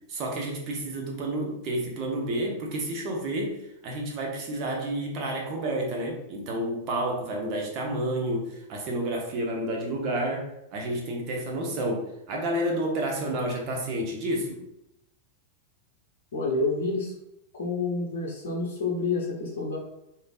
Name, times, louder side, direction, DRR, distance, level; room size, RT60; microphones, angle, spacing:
voice 1, 0.1-3.6 3.8-14.6, right 1 dB, 40° right, 0 dB, 0.9 m, -30 dB
voice 2, 16.3-17.1 17.5-19.8, left 3 dB, 60° left, -2 dB, 0.7 m, -29 dB
3.2 x 2.8 x 2.4 m, 0.83 s
figure-of-eight pair, 90°, 0 cm